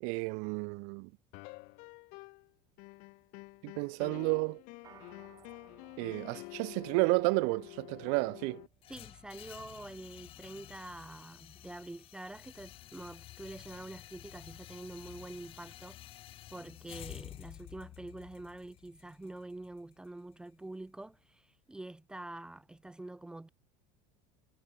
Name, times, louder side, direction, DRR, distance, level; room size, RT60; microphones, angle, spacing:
voice 1, 0.0-1.1 3.6-4.6 6.0-8.6, right 40 dB or more, 60° right, 0.4 m, -31 dB
sound 1, 1.3-2.5 2.8-8.7, left 27 dB, 55° left, 1.3 m, -49 dB
sound 2, 4.8-14.4, right 8 dB, 25° right, 6.8 m, -65 dB
sound 3, 8.8-20.9, left 14 dB, 40° left, 2.3 m, -51 dB
voice 2, 8.9-16.0 16.5-23.5, right 2 dB, 5° right, 0.6 m, -46 dB
cardioid pair, 160°, 15 cm